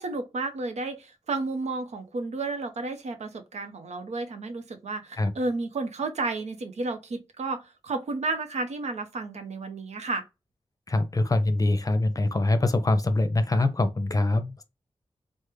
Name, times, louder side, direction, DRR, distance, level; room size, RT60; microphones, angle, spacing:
voice 1, 0.0-10.2, right 3 dB, 85° right, 0.6 m, -32 dB
voice 2, 10.9-14.6, left 2 dB, 30° left, 0.6 m, -24 dB
3.3 x 2.1 x 3.2 m
cardioid pair, 55°, 11 cm